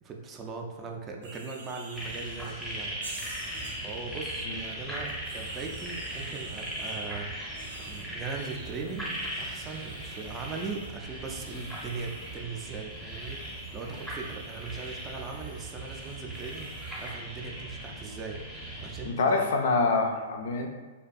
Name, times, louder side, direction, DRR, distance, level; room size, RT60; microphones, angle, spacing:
voice 1, 0.0-3.0 3.8-7.5 7.9-18.4 18.8-19.4 20.2-20.3, right 4 dB, 25° right, 2 dB, 0.4 m, -39 dB
sound 1, 1.2-2.5 3.0-4.2 5.0-7.0 7.5-12.4 12.9-17.1, right 2 dB, 80° right, 0.6 m, -48 dB
sound 2, 1.9-19.1, right 1 dB, ahead, 0.7 m, -39 dB
voice 2, 19.0-20.7, left 3 dB, 65° left, 3 dB, 0.4 m, -26 dB
2.6 x 2.2 x 2.5 m, 1.3 s
hypercardioid pair, 115°, 0 cm